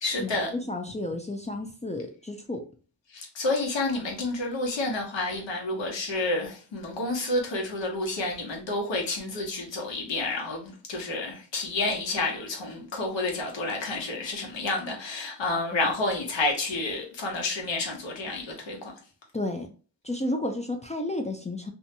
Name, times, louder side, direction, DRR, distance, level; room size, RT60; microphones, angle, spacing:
voice 1, 0.0-0.5 3.1-18.9, left 2 dB, 80° left, 1.0 m, -30 dB
voice 2, 0.7-2.6 19.3-19.7 20.0-21.7, left 1 dB, 15° left, 0.3 m, -32 dB
2.7 x 2.2 x 2.7 m
cardioid pair, 65°, 43 cm